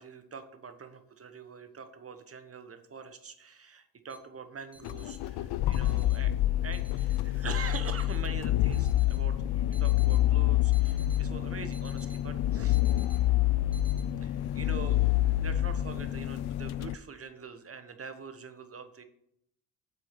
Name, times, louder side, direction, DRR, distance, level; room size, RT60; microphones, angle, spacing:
voice 1, 0.0-6.3 6.6-12.8 14.2-19.0, right 5 dB, 30° right, 9 dB, 1.2 m, -44 dB
sound 1, 4.1-4.2 4.7-5.2 5.7-6.2 6.7-7.2 7.7-8.2 8.7-9.2 9.7-10.2 10.7-11.2 11.7-12.2 12.7-13.2 13.7-14.0, right 1 dB, 5° right, 1.2 m, -54 dB
sound 2, 4.8-16.9, left 14 dB, 60° left, 0.5 m, -27 dB
7.5 x 4.7 x 6.7 m, 0.74 s
supercardioid pair, 70°, 44 cm